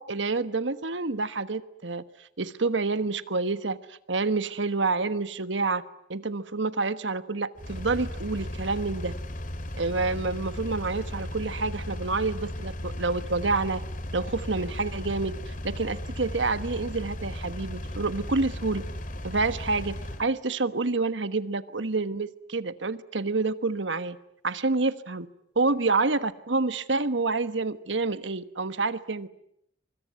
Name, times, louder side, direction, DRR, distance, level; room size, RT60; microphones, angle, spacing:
voice 1, 0.0-2.0 2.4-5.8 6.1-9.1 9.8-13.8 14.1-18.8 19.2-24.2 24.4-25.3 25.5-29.3, right 3 dB, 80° right, 12 dB, 1.3 m, -28 dB
Engine, 7.6-20.2, left 1 dB, 45° left, 2.5 m, -36 dB
25.5 x 25.0 x 9.5 m, 0.75 s
head